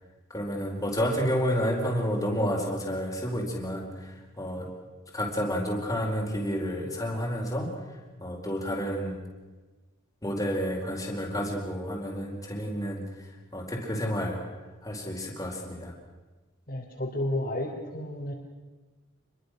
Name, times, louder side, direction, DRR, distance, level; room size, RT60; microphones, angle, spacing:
voice 1, 0.3-4.7 5.1-7.7 8.2-9.2 10.2-13.0 13.5-14.4 14.8-15.9, equal, 15° left, 0 dB, 4.4 m, -30 dB
voice 2, 16.7-18.3, left 1 dB, 40° left, -3 dB, 3.1 m, -31 dB
27.5 x 22.5 x 6.4 m, 1.3 s
head